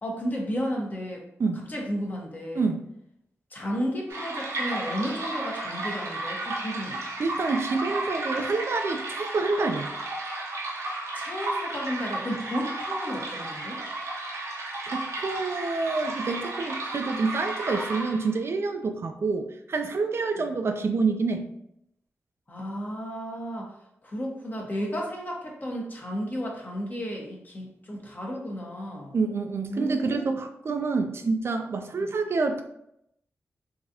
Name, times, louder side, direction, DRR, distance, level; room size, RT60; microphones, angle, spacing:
voice 1, 0.0-1.2 1.7-2.7 3.5-7.0 11.1-13.8 20.4-20.5 22.5-23.7 24.0-29.2 29.7-30.4, equal, 35° left, -1 dB, 1.0 m, -33 dB
sound 1, 4.1-18.4, right 2 dB, 80° right, 0.8 m, -33 dB
voice 2, 7.2-9.9 14.9-21.5 29.1-32.6, right 4 dB, 55° right, 6 dB, 0.4 m, -27 dB
3.9 x 2.5 x 2.7 m, 0.78 s
cardioid pair, 65°, 5 cm